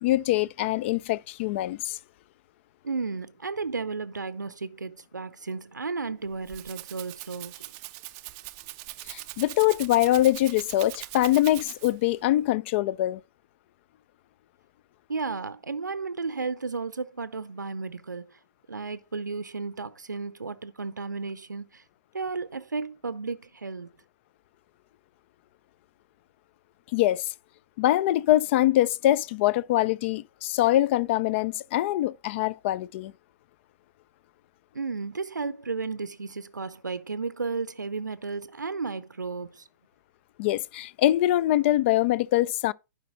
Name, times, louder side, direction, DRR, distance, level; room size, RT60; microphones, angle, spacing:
voice 1, 0.0-2.0 9.1-13.2 26.9-27.3 27.8-33.1 40.4-42.7, left 14 dB, 40° left, 0.4 m, -23 dB
voice 2, 2.8-7.7 15.1-18.4 18.7-21.8 22.1-23.9 34.7-39.7, right 4 dB, 85° right, 0.5 m, -33 dB
Rattle (instrument), 6.2-12.2, right 19 dB, 30° right, 0.4 m, -41 dB
11.5 x 5.1 x 4.0 m
figure-of-eight pair, 120°, 10 cm